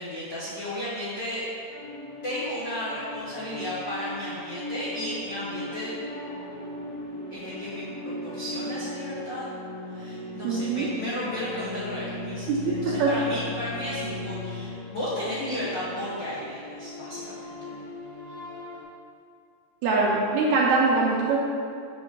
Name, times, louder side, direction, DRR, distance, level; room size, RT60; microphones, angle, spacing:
voice 1, 0.0-1.5 2.2-6.0 7.3-9.5 9.9-17.8, left 1 dB, 85° left, -10 dB, 0.9 m, -34 dB
sound 1, 1.7-18.8, left 1 dB, 65° left, 1.9 m, -38 dB
voice 2, 10.4-10.9 12.5-13.1 19.8-21.4, right 3 dB, 80° right, -3 dB, 1.7 m, -23 dB
7.3 x 3.0 x 5.9 m, 2.4 s
omnidirectional pair, 3.8 m